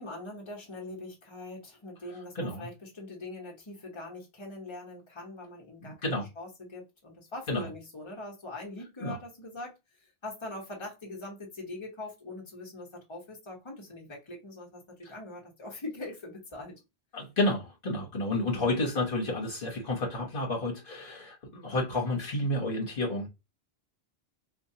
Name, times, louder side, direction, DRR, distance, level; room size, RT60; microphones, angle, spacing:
voice 1, 0.0-9.8 10.0-16.7 18.5-18.7, left 2 dB, 30° left, 1.1 m, -42 dB
voice 2, 2.3-2.7 5.8-6.3 7.5-7.7 9.0-9.2 17.1-23.3, left 2 dB, 60° left, 1.2 m, -30 dB
4.4 x 2.3 x 2.7 m
omnidirectional pair, 1.0 m